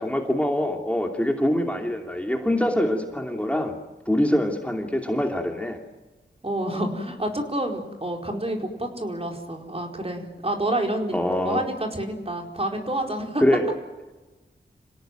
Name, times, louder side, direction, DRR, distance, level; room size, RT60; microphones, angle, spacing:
voice 1, 0.0-3.8 4.1-5.8 11.1-11.6 13.4-13.6, left 1 dB, 5° left, 2 dB, 2.8 m, -24 dB
voice 2, 6.4-11.2 11.4-13.4, right 1 dB, 30° right, 2 dB, 4.6 m, -28 dB
27.0 x 17.5 x 9.2 m, 1.2 s
wide cardioid pair, 65°, 19 cm